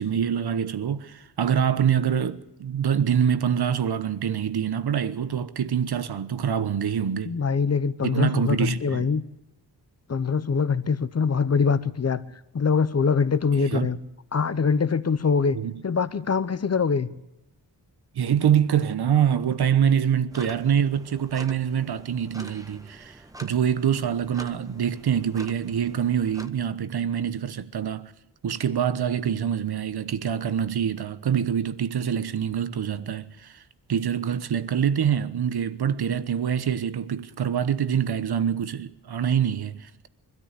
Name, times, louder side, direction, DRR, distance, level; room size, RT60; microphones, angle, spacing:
voice 1, 0.0-7.4 8.0-9.1 13.6-13.9 15.5-15.8 18.1-28.1 28.4-33.6 33.9-39.9, right 8 dB, 65° right, 1.2 m, -25 dB
voice 2, 7.2-9.2 10.1-12.2 12.5-14.0 14.3-15.6 15.8-17.1, left 5 dB, 40° left, 0.9 m, -23 dB
sound 1, 20.3-26.5, right 1 dB, 10° right, 1.1 m, -46 dB
24.0 x 13.5 x 8.3 m
wide cardioid pair, 170°, 41 cm